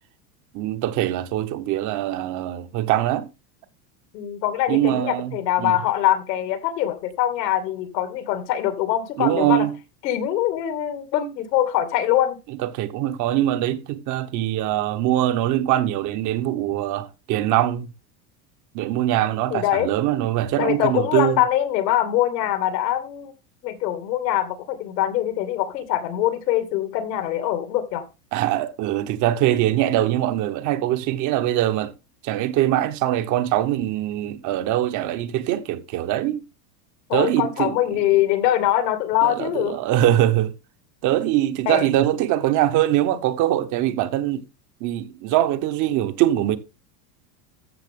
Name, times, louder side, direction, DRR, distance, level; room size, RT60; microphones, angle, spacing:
voice 1, 0.5-3.3 4.7-5.8 9.2-9.7 12.6-17.9 18.7-21.4 28.3-31.9 32.2-36.4 37.1-37.7 39.2-40.5 41.0-44.4 44.8-46.6, right 13 dB, 40° right, 1.0 m, -22 dB
voice 2, 4.1-9.7 10.0-12.4 19.5-19.9 20.6-23.3 23.6-28.1 37.1-39.8 41.7-41.9, left 12 dB, 90° left, 2.6 m, -23 dB
14.0 x 6.6 x 3.7 m
supercardioid pair, 155°, 49 cm